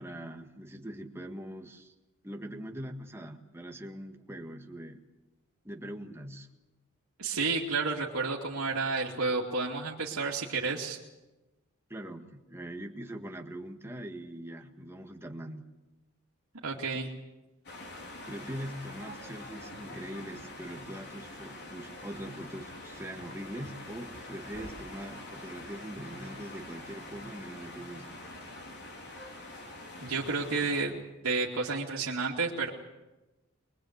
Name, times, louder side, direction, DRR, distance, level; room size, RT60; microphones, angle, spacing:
voice 1, 0.0-1.9 2.2-5.0 5.6-6.5 11.9-15.7 18.3-28.1, right 1 dB, 10° right, 4 dB, 1.7 m, -42 dB
voice 2, 7.2-11.0 16.6-17.1 30.0-31.0 31.2-32.7, right 4 dB, 85° right, -4 dB, 2.6 m, -31 dB
sound 1, 17.7-30.8, left 2 dB, 50° left, 4.3 m, -45 dB
23.5 x 22.5 x 8.1 m, 1.1 s
head